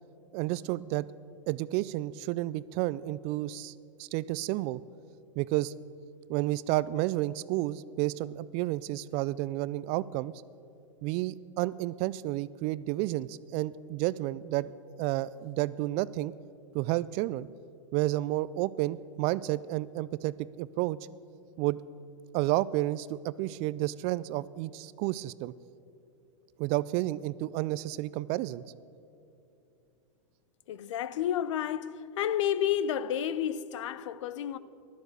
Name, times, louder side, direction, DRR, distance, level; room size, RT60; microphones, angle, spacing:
voice 1, 0.3-1.1 1.5-3.7 4.0-4.8 5.4-5.7 6.3-10.3 11.0-16.3 16.7-17.5 17.9-21.0 21.6-21.8 22.3-25.5 26.6-28.6, right 17 dB, 40° right, 0.4 m, -31 dB
voice 2, 30.7-34.6, left 10 dB, 65° left, 0.6 m, -31 dB
15.0 x 12.5 x 6.6 m
hypercardioid pair, 110°, 17 cm